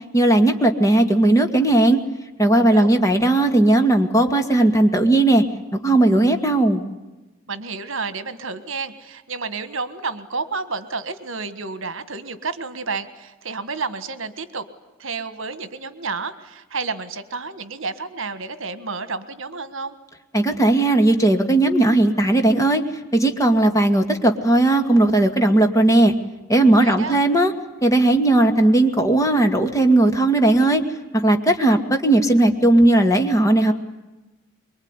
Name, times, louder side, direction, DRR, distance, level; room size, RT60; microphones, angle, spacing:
voice 1, 0.1-2.0 2.4-5.4 5.7-6.8 20.3-22.8 23.1-26.1 26.5-27.5 27.8-30.8 31.1-33.7, right 2 dB, 15° left, 6 dB, 2.2 m, -17 dB
voice 2, 2.5-3.0 7.5-14.7 15.0-20.0 26.8-27.2, right 4 dB, 65° right, 12 dB, 1.6 m, -30 dB
24.5 x 23.0 x 9.8 m, 1.1 s
head